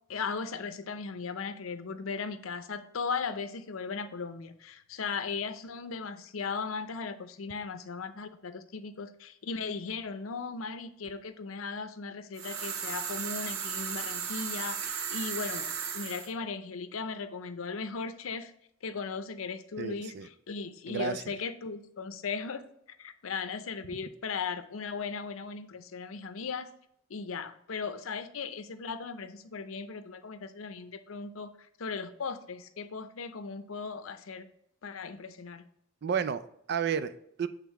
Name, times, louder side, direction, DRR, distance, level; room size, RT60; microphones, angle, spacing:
voice 1, 0.1-18.5 18.8-22.7 23.0-26.7 27.1-34.5 34.8-35.6, left 5 dB, 85° left, 10 dB, 0.6 m, -37 dB
sound 1, 12.4-16.3, right 7 dB, 80° right, 0.7 m, -35 dB
voice 2, 19.8-20.3 20.9-21.2 36.0-37.5, right 7 dB, 55° right, 13 dB, 0.4 m, -32 dB
8.3 x 3.5 x 4.6 m, 0.74 s
head